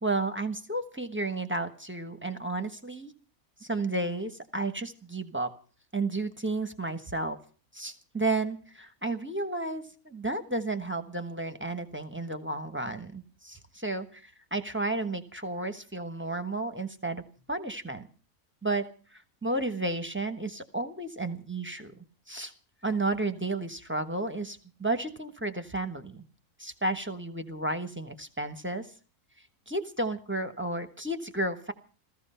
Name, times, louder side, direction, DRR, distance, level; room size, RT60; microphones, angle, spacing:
voice 1, 0.0-3.1 3.6-5.5 5.9-7.4 7.7-17.2 17.5-18.1 18.6-21.9 22.3-22.5 22.8-26.2 26.6-28.9 29.7-31.7, right 2 dB, 10° right, 8 dB, 1.1 m, -32 dB
15.0 x 15.0 x 5.7 m, 0.38 s
omnidirectional pair, 1.6 m